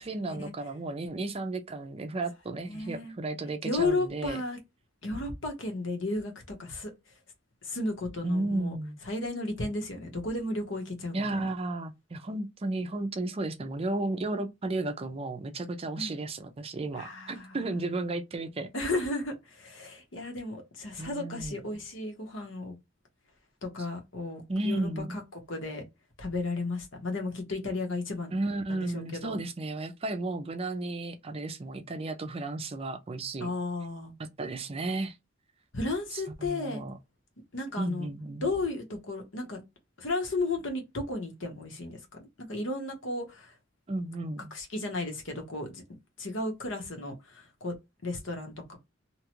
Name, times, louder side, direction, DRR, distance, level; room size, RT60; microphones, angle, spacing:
voice 1, 0.0-4.4 8.2-9.0 11.1-18.7 21.0-21.6 24.5-25.2 28.3-33.5 34.4-35.2 36.1-37.0 37.8-38.5 43.9-44.5, right 2 dB, 30° right, 0.5 m, -33 dB
voice 2, 2.5-3.1 3.6-4.6 5.0-6.3 6.6-6.9 7.6-8.8 9.0-11.4 15.9-16.1 17.0-17.6 18.7-22.7 23.6-25.8 26.2-28.4 28.7-29.4 33.4-34.1 35.7-36.8 37.5-38.1 38.4-39.6 40.0-43.5 44.5-45.8 46.2-47.7 48.0-48.8, left 2 dB, 70° left, 1.1 m, -34 dB
2.8 x 2.3 x 2.9 m
head